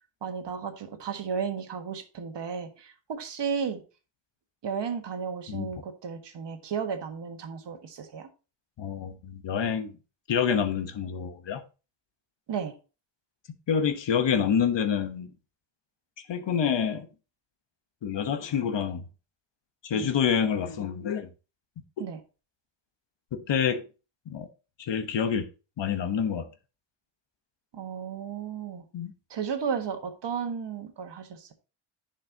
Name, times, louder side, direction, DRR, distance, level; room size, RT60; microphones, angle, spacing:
voice 1, 0.2-3.8 4.6-8.3 12.5-12.7 19.9-20.1 22.0-22.2 27.7-28.8 29.3-31.5, right 6 dB, 55° right, 1.6 m, -34 dB
voice 2, 8.8-10.0 10.3-11.6 13.7-15.3 16.3-17.1 18.0-19.0 19.8-21.3 23.3-23.8 24.3-24.5 24.8-25.5 25.8-26.5 28.9-29.1, left 7 dB, 60° left, 1.2 m, -27 dB
10.0 x 5.6 x 2.8 m
cardioid pair, 90°, 50 cm